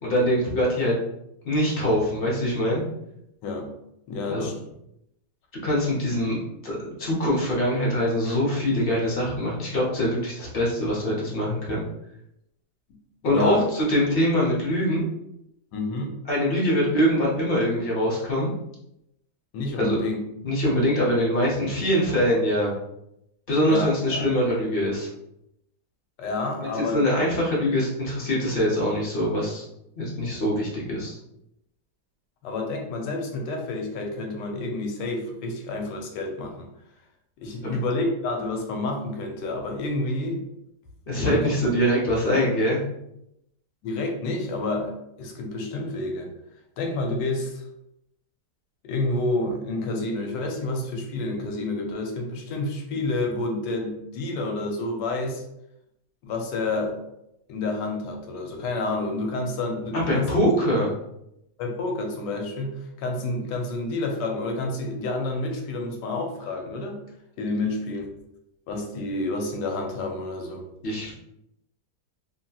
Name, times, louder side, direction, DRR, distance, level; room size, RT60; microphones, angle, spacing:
voice 1, 0.0-1.0 1.4-2.8 4.2-4.5 5.6-11.8 13.2-15.0 16.3-18.5 19.8-20.0 20.4-22.7 23.5-25.1 26.6-29.7 30.0-31.2 37.6-37.8 41.1-42.8 59.9-60.9 70.8-71.1, equal, 55° left, -4 dB, 0.6 m, -23 dB
voice 2, 4.1-4.5 13.2-13.7 15.7-16.1 19.5-20.2 23.7-24.3 26.2-27.0 32.4-36.7 37.4-40.4 41.2-41.5 43.8-46.3 46.8-47.7 48.8-55.4 56.2-57.0 57.5-60.4 61.6-67.0 67.4-68.1 68.7-70.6, left 2 dB, 85° left, 2 dB, 1.2 m, -29 dB
2.8 x 2.8 x 2.2 m, 0.81 s
omnidirectional pair, 1.8 m